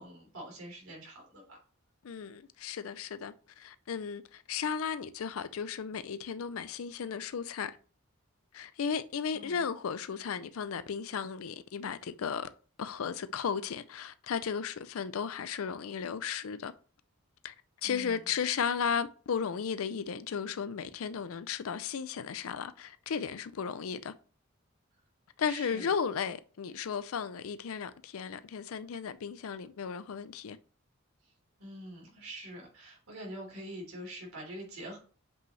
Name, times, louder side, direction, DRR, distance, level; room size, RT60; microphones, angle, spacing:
voice 1, 0.0-1.6 9.3-9.6 17.8-18.3 25.5-25.9 31.6-35.0, right 1 dB, 85° right, 3.7 m, -45 dB
voice 2, 2.0-7.8 8.5-12.5 12.8-16.7 17.4-17.5 17.8-24.1 25.4-30.6, left 6 dB, 80° left, 0.4 m, -35 dB
7.7 x 5.5 x 3.2 m
head